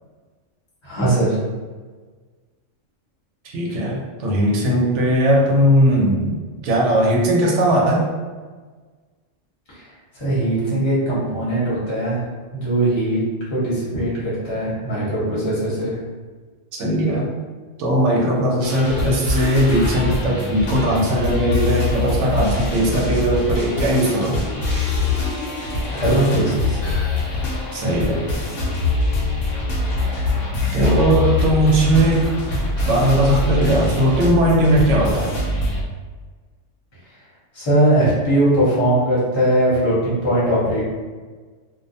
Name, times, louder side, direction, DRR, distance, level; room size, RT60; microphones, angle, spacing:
voice 1, 0.8-1.4 9.7-9.9 10.1-12.2 12.5-13.2 13.5-16.0 25.9-26.9 37.5-40.8, right 1 dB, 25° left, -9 dB, 0.8 m, -20 dB
voice 2, 3.5-8.1 15.3-15.4 16.7-17.3 17.8-24.5 27.7-28.2 30.7-32.3 32.8-35.4, right 1 dB, 70° right, -2 dB, 0.9 m, -18 dB
sound 1, 18.6-35.8, left 2 dB, 80° left, 1.0 m, -23 dB
2.4 x 2.0 x 2.6 m, 1.4 s
omnidirectional pair, 1.3 m